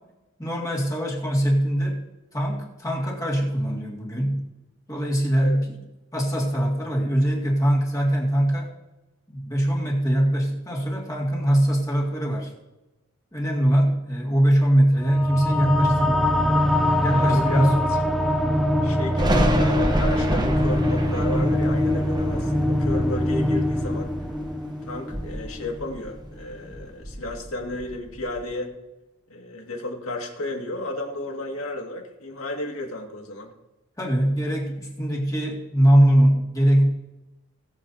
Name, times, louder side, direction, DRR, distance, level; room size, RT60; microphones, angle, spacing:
voice 1, 0.4-2.0 2.3-4.4 4.9-5.8 6.1-8.7 9.3-12.5 13.3-16.4 17.0-17.8 34.0-36.9, equal, 15° left, -2 dB, 2.2 m, -22 dB
sound 1, 15.0-25.9, left 1 dB, ahead, 0.4 m, -23 dB
voice 2, 17.1-17.7 18.8-24.1 24.9-28.8 29.3-33.5, left 1 dB, 90° left, 2 dB, 2.1 m, -33 dB
Thunder, 19.2-24.6 25.0-26.4 26.7-28.4, equal, 20° right, 1.0 m, -28 dB
20.0 x 7.7 x 2.8 m, 1.0 s
head